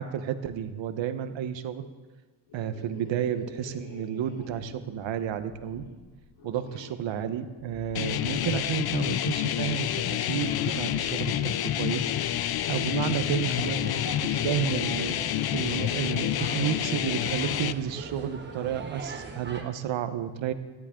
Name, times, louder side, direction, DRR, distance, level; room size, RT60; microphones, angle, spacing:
voice 1, 0.0-1.9 2.5-5.8 6.4-20.5, right 9 dB, 65° right, 10 dB, 1.1 m, -31 dB
sound 1, 2.5-7.1 7.6-8.7 9.0-9.8 10.3-11.3 12.0-16.7, left 3 dB, 75° left, 3.8 m, -48 dB
sound 2, 7.9-17.7, left 12 dB, 50° left, 0.5 m, -28 dB
sound 3, 13.2-19.6, right 3 dB, 20° right, 1.5 m, -41 dB
17.0 x 13.0 x 3.8 m, 1.3 s
cardioid pair, 135°, 49 cm